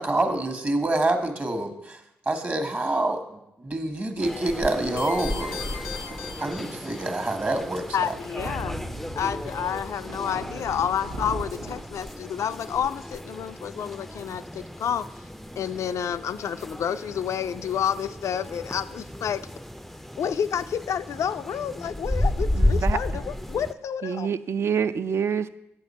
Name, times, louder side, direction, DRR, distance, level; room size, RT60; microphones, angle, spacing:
voice 1, 0.0-2.0 2.3-3.2 3.6-5.6 6.4-8.0, right 2 dB, 35° right, 6 dB, 1.2 m, -26 dB
sound 1, 4.2-23.7, left 1 dB, ahead, 0.4 m, -33 dB
sound 2, 4.8-11.8, right 1 dB, 85° right, 0.9 m, -40 dB
sound 3, 5.0-7.3, left 7 dB, 90° left, 0.8 m, -38 dB
voice 2, 7.9-8.8 9.2-15.1 15.6-19.4 20.2-24.3, left 8 dB, 65° left, 13 dB, 0.3 m, -29 dB
voice 3, 22.6-23.0 24.0-25.5, right 7 dB, 55° right, 12 dB, 0.4 m, -26 dB
8.1 x 6.6 x 4.2 m, 0.86 s
supercardioid pair, 45°, 5 cm